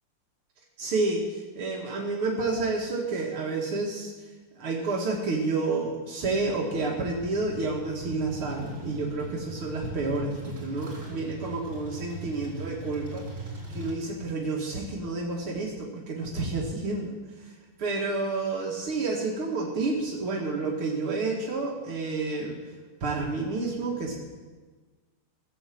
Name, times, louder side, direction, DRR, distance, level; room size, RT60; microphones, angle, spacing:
voice 1, 0.8-4.1 4.6-13.3 13.7-17.2 17.8-22.6 23.0-24.1, right 3 dB, 80° right, -2 dB, 2.7 m, -29 dB
sound 1, 7.1-13.9, right 2 dB, 60° right, 4.6 m, -41 dB
17.0 x 7.3 x 7.5 m, 1.3 s
omnidirectional pair, 2.3 m